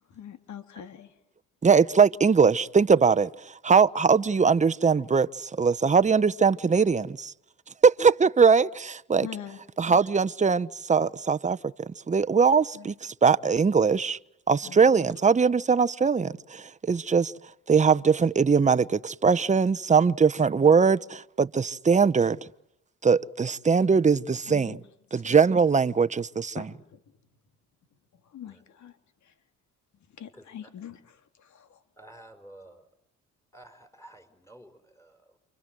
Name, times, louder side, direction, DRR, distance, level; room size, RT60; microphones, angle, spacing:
voice 1, 0.1-1.1 9.2-9.6 12.7-12.9 14.6-14.9 24.5-24.8 25.1-25.4 26.5-27.0 28.1-29.0 29.2-29.4 30.1-31.8, left 9 dB, 70° left, 3.3 m, -43 dB
voice 2, 1.6-7.3 7.8-9.3 9.8-11.7 12.1-14.2 14.5-17.3 17.7-22.4 23.0-24.8 25.1-26.6, right 5 dB, 25° right, 1.0 m, -21 dB
voice 3, 30.3-30.7 32.0-32.9 33.5-35.4, right 1 dB, 10° left, 4.9 m, -51 dB
29.5 x 25.5 x 7.8 m
cardioid pair, 90°, 30 cm